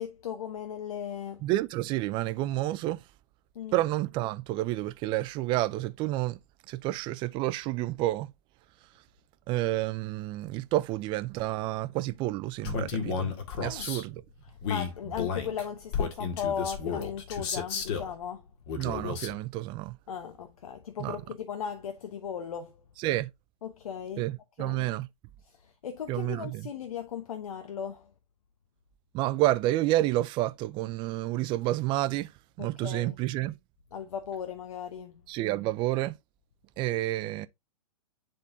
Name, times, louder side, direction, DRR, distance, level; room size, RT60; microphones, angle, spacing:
voice 1, 0.0-1.5 3.5-3.8 13.6-13.9 14.5-18.5 20.1-22.8 23.6-24.3 24.6-24.9 25.4-28.1 32.6-33.2 33.9-35.2, left 8 dB, 75° left, 1.1 m, -37 dB
voice 2, 1.4-3.0 3.7-6.4 6.7-8.3 9.5-14.2 18.8-20.0 21.0-21.2 23.0-23.3 24.2-25.1 26.1-26.6 29.1-32.3 32.6-33.5 35.3-36.2 36.8-37.5, right 16 dB, 25° right, 0.5 m, -29 dB
Male speech man speaking, 12.6-14.0 14.6-18.1 18.7-19.4, left 6 dB, 45° left, 1.9 m, -32 dB
10.5 x 3.8 x 2.7 m
hypercardioid pair, 135°, 18 cm